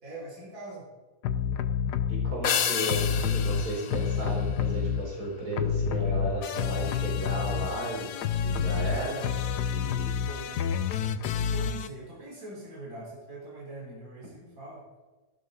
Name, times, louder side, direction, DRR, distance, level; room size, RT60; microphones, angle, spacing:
voice 1, 0.0-0.9 2.6-3.3 10.0-10.5 11.4-14.8, right 2 dB, 55° right, -5 dB, 4.0 m, -43 dB
sound 1, 1.2-2.4 2.9-5.3 5.5-11.9, left 7 dB, 90° left, 1.4 m, -29 dB
voice 2, 2.1-8.1 8.4-9.2 9.7-10.1, right 1 dB, 70° right, -3 dB, 4.6 m, -34 dB
sound 2, 2.4-5.1, left 8 dB, 65° left, 1.2 m, -31 dB
14.5 x 12.0 x 4.0 m, 1.2 s
omnidirectional pair, 1.7 m